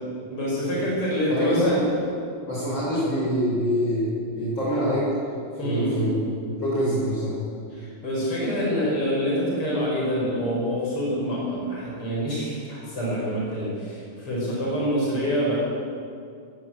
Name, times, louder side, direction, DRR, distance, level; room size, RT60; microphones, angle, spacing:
voice 1, 0.3-1.9 5.6-6.0 7.7-15.6, equal, 85° left, -5 dB, 6.8 m, -26 dB
voice 2, 1.3-1.7 2.5-4.1 4.4-5.1 5.6-6.1 6.4-7.4, equal, 55° left, -8 dB, 7.7 m, -25 dB
21.0 x 17.0 x 7.9 m, 2.3 s
omnidirectional pair, 2.4 m